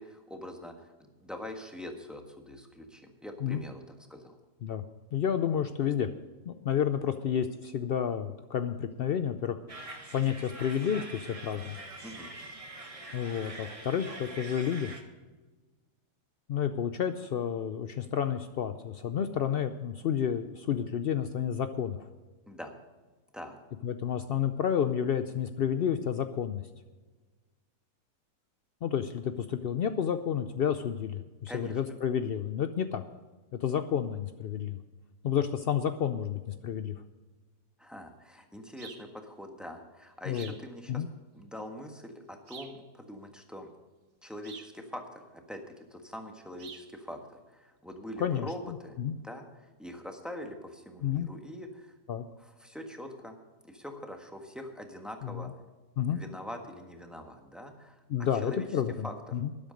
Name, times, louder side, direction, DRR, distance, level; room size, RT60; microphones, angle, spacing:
voice 1, 0.0-4.4 12.0-12.3 22.5-22.7 23.3-23.6 31.5-32.0 37.8-41.0 41.3-43.7 44.2-49.0 49.2-51.9 52.4-53.3 53.6-55.5 56.1-59.4, left 1 dB, ahead, 3 dB, 1.4 m, -44 dB
voice 2, 5.1-6.1 6.4-9.6 10.1-11.8 13.1-14.9 16.5-22.1 23.8-26.6 28.8-33.0 33.6-34.8 35.2-36.9 40.3-40.5 40.9-41.1 48.2-48.5 49.0-49.2 51.0-51.3 52.1-52.2 55.2-55.4 56.0-56.2 58.1-59.1 59.3-59.5, left 8 dB, 80° left, 9 dB, 0.5 m, -30 dB
sound 1, 9.7-15.0, right 2 dB, 20° right, 1.4 m, -44 dB
sound 2, 38.8-39.1 40.3-40.7 42.5-42.8 44.4-44.8 46.6-46.9, right 6 dB, 90° right, 1.6 m, -47 dB
13.0 x 11.0 x 5.2 m, 1.3 s
omnidirectional pair, 1.7 m